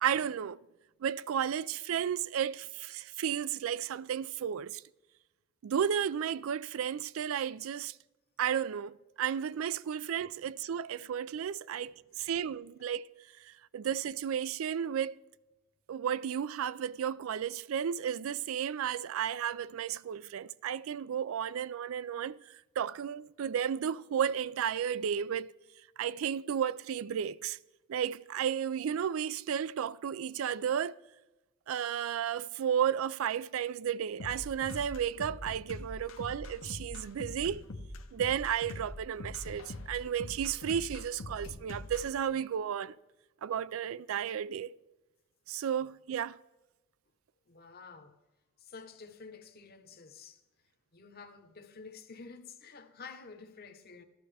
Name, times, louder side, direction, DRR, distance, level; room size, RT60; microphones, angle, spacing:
voice 1, 0.0-0.6 1.0-4.8 5.6-8.0 8.4-13.1 13.4-15.2 15.9-25.5 26.0-27.6 27.9-31.0 31.7-37.6 38.1-42.9 43.4-44.7 45.5-46.4, right 8 dB, 80° right, 0.4 m, -33 dB
sound 1, 34.2-42.1, left 2 dB, 75° left, 0.9 m, -43 dB
voice 2, 47.5-48.2 48.6-50.4 50.9-54.0, left 5 dB, 50° left, 1.0 m, -50 dB
14.0 x 12.0 x 3.4 m
head